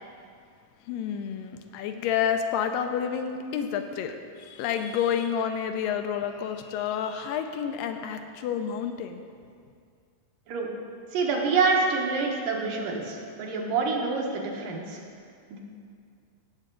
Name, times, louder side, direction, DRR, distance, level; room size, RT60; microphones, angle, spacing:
voice 1, 0.8-9.2, left 8 dB, 80° left, 7 dB, 2.2 m, -29 dB
voice 2, 11.1-15.0 15.5-15.6, right 4 dB, 70° right, -1 dB, 2.7 m, -27 dB
16.5 x 7.6 x 3.8 m, 2.2 s
omnidirectional pair, 4.1 m